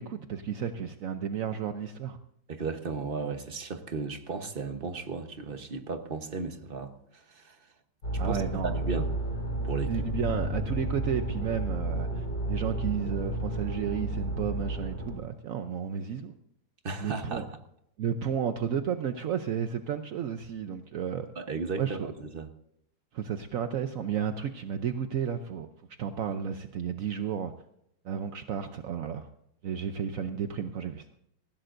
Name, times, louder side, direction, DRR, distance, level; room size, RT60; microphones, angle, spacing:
voice 1, 0.0-2.2 8.2-8.8 9.9-16.3 17.0-17.5 18.0-21.3 21.8-22.1 23.1-25.7 26.0-27.5 28.0-29.3 29.6-31.1, right 8 dB, 65° right, 0.8 m, -32 dB
voice 2, 2.5-7.6 8.2-8.4 8.6-9.1 9.6-10.0 16.8-17.4 21.4-22.5, right 4 dB, 35° right, 1.0 m, -35 dB
sound 1, 8.0-15.2, right 1 dB, 65° left, 7.8 m, -32 dB
19.5 x 16.0 x 2.6 m
omnidirectional pair, 2.2 m